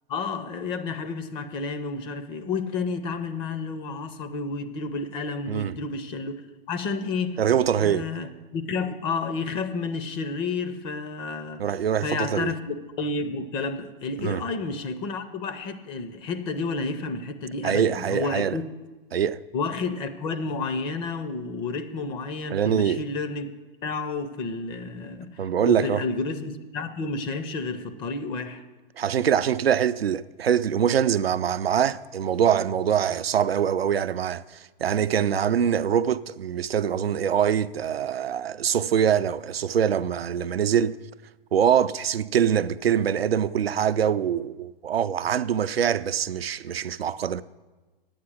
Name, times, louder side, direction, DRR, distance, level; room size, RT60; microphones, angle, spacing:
voice 1, 0.1-6.4 6.7-7.4 7.8-11.6 12.0-18.6 19.5-23.5 23.8-28.6, left 4 dB, 15° left, 0.4 m, -31 dB
voice 2, 7.4-8.0 11.6-12.5 14.2-14.4 17.6-18.6 19.1-19.4 22.5-23.0 25.4-26.0 29.0-41.0 41.5-47.4, right 8 dB, 85° right, 0.5 m, -24 dB
9.6 x 8.7 x 6.1 m
hypercardioid pair, 125°, 29 cm